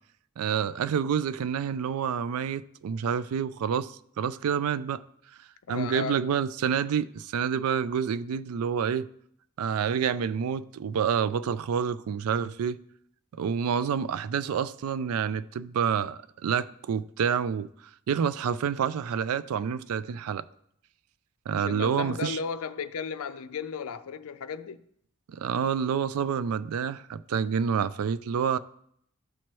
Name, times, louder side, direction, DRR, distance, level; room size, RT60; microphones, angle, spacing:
voice 1, 0.4-5.0 5.7-9.1 9.6-12.8 13.3-17.7 18.1-20.4 21.5-22.4 25.3-28.6, right 7 dB, 80° right, 0.3 m, -28 dB
voice 2, 5.7-6.2 21.5-24.8, left 5 dB, 75° left, 0.4 m, -35 dB
12.5 x 4.4 x 3.1 m
head